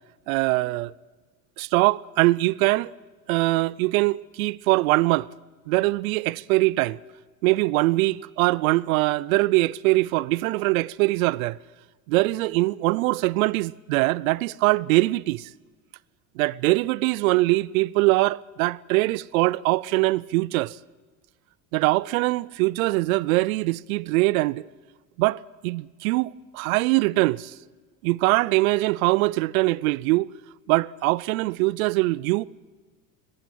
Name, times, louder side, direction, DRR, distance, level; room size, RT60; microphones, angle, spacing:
voice 1, 0.3-0.9 1.6-2.9 3.3-5.3 5.7-7.0 7.4-11.6 12.1-15.5 16.4-20.8 21.7-24.7 25.2-27.5 28.0-30.3 30.7-32.4, right 21 dB, 85° right, 0.5 m, -22 dB
21.0 x 15.0 x 9.2 m
supercardioid pair, 100°, 40 cm